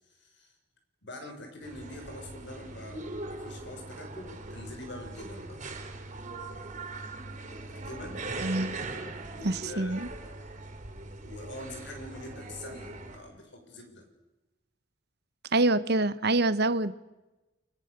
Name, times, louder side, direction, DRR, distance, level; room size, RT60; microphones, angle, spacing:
voice 1, 0.2-0.5 1.0-5.6 7.7-8.2 9.3-10.5 11.2-14.0, left 1 dB, 70° left, 4 dB, 6.3 m, -44 dB
sound 1, 1.6-13.2, right 2 dB, 40° right, 4.5 m, -41 dB
voice 2, 8.4-8.8 9.4-10.1 15.5-16.9, right 2 dB, 60° right, 14 dB, 1.2 m, -26 dB
29.5 x 23.0 x 6.9 m, 1.1 s
head